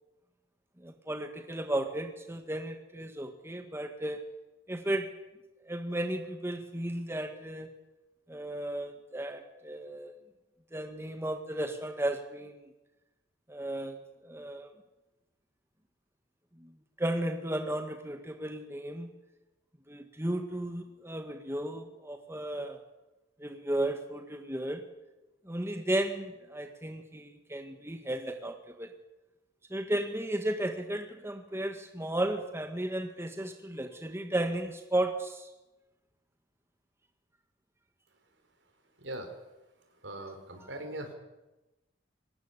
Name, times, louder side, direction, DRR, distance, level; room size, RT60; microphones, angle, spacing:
voice 1, 0.8-4.2 4.7-5.1 5.6-7.7 8.3-10.1 10.7-12.6 13.5-14.7 16.6-16.7 17.0-19.1 19.9-22.8 23.4-24.8 25.4-28.9 29.7-35.5 40.6-40.7, right 1 dB, 15° right, 6 dB, 1.8 m, -34 dB
voice 2, 39.0-39.3 40.0-41.1, right 1 dB, 70° right, 6 dB, 5.1 m, -40 dB
25.0 x 19.5 x 8.4 m, 1.1 s
head